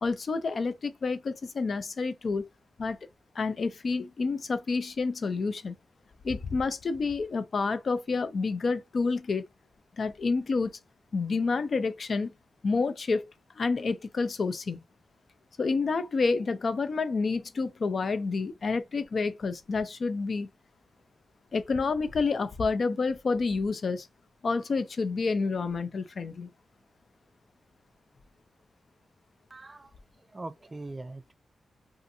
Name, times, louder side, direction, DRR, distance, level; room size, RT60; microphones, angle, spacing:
voice 1, 0.0-2.5 2.8-3.0 3.4-5.7 6.2-9.4 10.0-10.8 11.1-12.3 12.6-13.3 13.6-14.8 15.6-20.5 21.5-24.1 24.4-26.5, left 4 dB, 55° left, 0.4 m, -29 dB
voice 2, 29.5-29.9 30.3-31.3, right 2 dB, 25° right, 0.3 m, -41 dB
2.5 x 2.4 x 2.7 m
wide cardioid pair, 95°, 0 cm